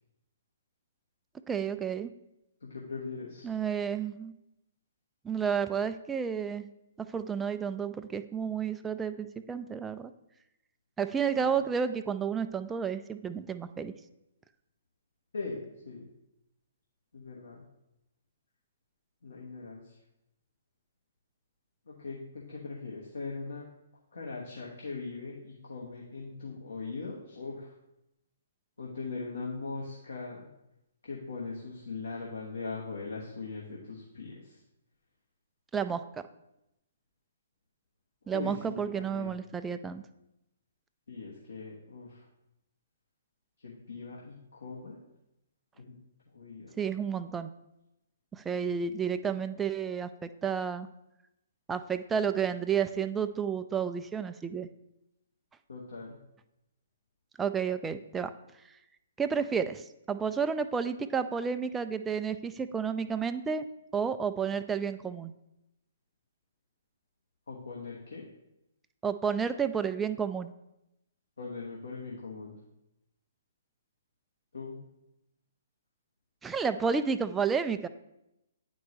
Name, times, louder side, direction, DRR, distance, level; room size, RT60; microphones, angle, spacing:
voice 1, 1.5-2.1 3.4-4.3 5.2-6.7 7.0-10.1 11.0-13.9 35.7-36.0 38.3-40.0 46.8-47.5 48.3-50.9 51.7-54.7 57.4-58.3 59.2-63.7 63.9-65.3 69.0-70.5 76.4-77.9, right 6 dB, 10° right, 10 dB, 0.3 m, -31 dB
voice 2, 2.6-3.5 15.3-16.1 17.1-17.6 19.2-20.0 21.9-23.7 24.1-27.7 28.8-30.5 31.0-34.6 38.2-39.3 41.1-42.3 43.6-45.0 45.8-46.0 46.3-46.7 55.7-56.2 67.5-68.2 71.4-72.6 74.5-74.8, left 4 dB, 70° left, -3 dB, 1.1 m, -40 dB
9.4 x 4.4 x 3.1 m, 0.88 s
figure-of-eight pair, 125°, 0 cm